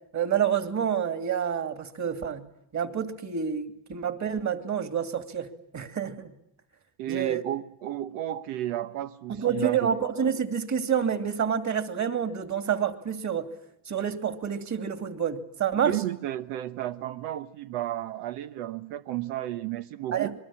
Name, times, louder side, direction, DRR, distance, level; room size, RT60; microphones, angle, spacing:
voice 1, 0.1-2.5 2.7-6.3 7.1-7.4 9.3-13.5 13.9-16.0 20.1-20.3, right 8 dB, 35° right, 2.7 m, -28 dB
voice 2, 7.0-9.9 15.8-20.3, right 13 dB, 90° right, 1.2 m, -32 dB
27.5 x 22.5 x 8.7 m
cardioid pair, 135°, 50 cm